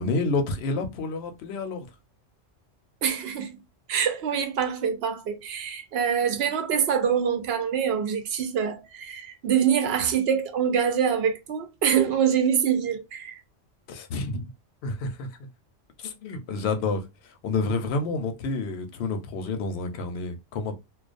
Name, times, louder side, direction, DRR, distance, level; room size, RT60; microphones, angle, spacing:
voice 1, 0.0-1.9 13.9-14.4 14.8-15.3 16.0-17.0 17.4-20.8, left 3 dB, 65° left, 0.8 m, -29 dB
voice 2, 3.0-3.6 3.9-13.4, right 8 dB, 65° right, 0.7 m, -25 dB
2.3 x 2.2 x 2.4 m
omnidirectional pair, 1.3 m